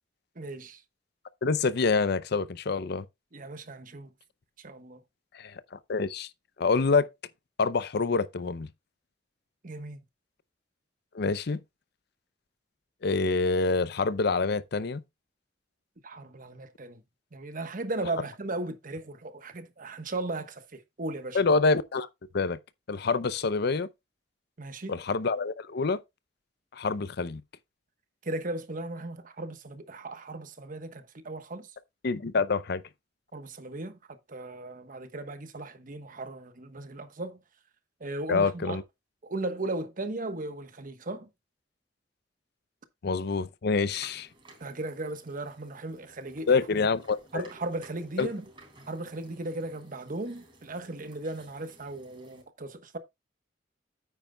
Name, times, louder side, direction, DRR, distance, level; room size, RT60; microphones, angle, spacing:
voice 1, 0.4-0.8 3.3-4.1 4.6-5.0 9.6-10.0 16.0-17.0 17.3-21.4 24.6-25.0 28.2-31.7 33.3-37.4 38.0-38.8 39.2-41.3 44.6-46.6 47.3-48.4 48.9-53.0, right 2 dB, 45° right, 1.1 m, -37 dB
voice 2, 1.4-3.0 5.3-5.6 5.9-6.3 6.6-7.1 7.6-8.7 11.1-11.6 13.0-15.0 21.3-22.1 22.3-22.6 22.9-23.9 24.9-26.0 26.7-27.4 32.0-32.8 38.3-38.8 43.0-44.3 46.5-47.4 48.2-48.3, left 4 dB, 60° left, 0.6 m, -26 dB
sound 1, 43.8-52.4, right 2 dB, 30° right, 3.7 m, -55 dB
9.2 x 9.1 x 2.2 m
head